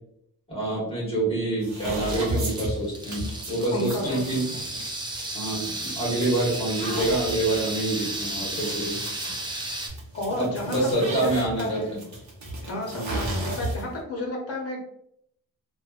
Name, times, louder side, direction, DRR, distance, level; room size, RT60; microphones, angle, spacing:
voice 1, 0.5-4.4 5.3-9.0 10.4-12.0 12.9-13.2, right 2 dB, 15° left, -6 dB, 1.3 m, -27 dB
sound 1, 1.6-14.0, right 1 dB, 50° right, 0.8 m, -35 dB
sound 2, 2.1-9.9, right 2 dB, 15° right, 0.3 m, -34 dB
voice 2, 3.7-4.2 10.1-11.9 12.6-14.8, left 1 dB, 40° left, -1 dB, 0.8 m, -31 dB
3.1 x 2.2 x 2.4 m, 0.73 s
wide cardioid pair, 170°, 37 cm